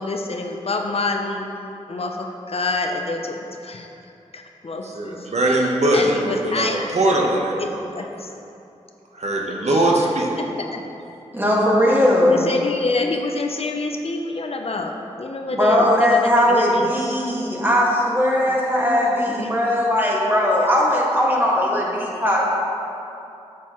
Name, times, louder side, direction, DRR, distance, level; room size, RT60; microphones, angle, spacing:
voice 1, 0.0-1.5 1.9-3.9 4.3-7.0 7.6-8.3 9.7-9.9 10.4-10.9 12.2-16.9 19.4-19.5, left 3 dB, 55° left, 3 dB, 0.7 m, -27 dB
voice 2, 4.8-7.8 9.1-10.3, right 1 dB, 65° right, -2 dB, 1.1 m, -21 dB
voice 3, 11.3-12.5 15.5-22.5, left 1 dB, 15° right, -4 dB, 1.9 m, -19 dB
8.3 x 7.4 x 3.1 m, 2.8 s
cardioid pair, 50°, 12 cm